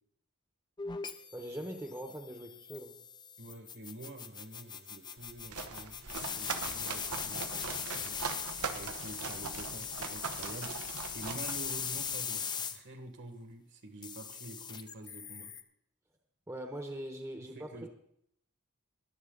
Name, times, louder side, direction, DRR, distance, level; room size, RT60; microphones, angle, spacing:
sound 1, 0.8-12.8 14.0-15.6, left 7 dB, 20° left, 0.5 m, -40 dB
voice 1, 1.3-3.0 16.5-17.9, right 1 dB, 15° right, 4 dB, 1.0 m, -42 dB
voice 2, 3.4-8.2 8.7-10.9 11.1-15.5 17.5-17.9, right 2 dB, 55° right, 6 dB, 1.7 m, -48 dB
sound 2, 5.2-12.2, right 5 dB, 85° right, 1.1 m, -41 dB
21.0 x 7.8 x 3.9 m, 0.70 s
head